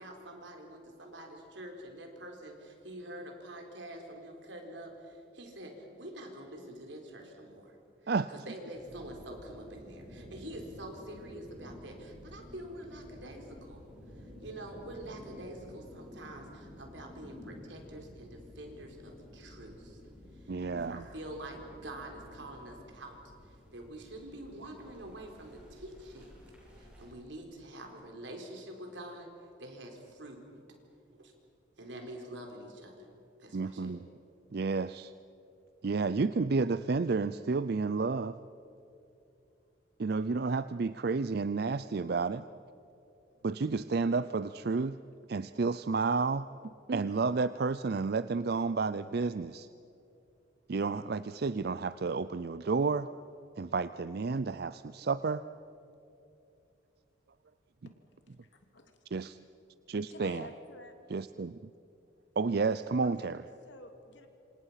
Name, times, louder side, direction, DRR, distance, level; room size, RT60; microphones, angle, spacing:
voice 1, 0.0-7.8 8.0-13.8 14.1-20.0 20.8-23.1 23.5-26.4 26.8-29.3 29.6-30.4 31.1-31.3 31.8-32.9 33.4-34.0, right 1 dB, 70° right, 2 dB, 4.2 m, -46 dB
sound 1, 8.7-27.1, left 1 dB, 5° right, 7.7 m, -52 dB
voice 2, 20.5-21.0 33.5-34.1 34.5-35.1 35.8-38.4 40.0-42.4 43.4-45.0 45.3-49.7 50.7-53.1 53.6-55.4 59.1-59.4 59.9-60.5 61.1-61.6 62.4-63.4, right 4 dB, 55° right, 14 dB, 0.4 m, -31 dB
voice 3, 58.3-59.0 60.1-60.9 63.0-63.3 63.6-64.3, left 2 dB, 70° left, 5 dB, 2.7 m, -50 dB
27.0 x 26.5 x 5.8 m, 2.7 s
head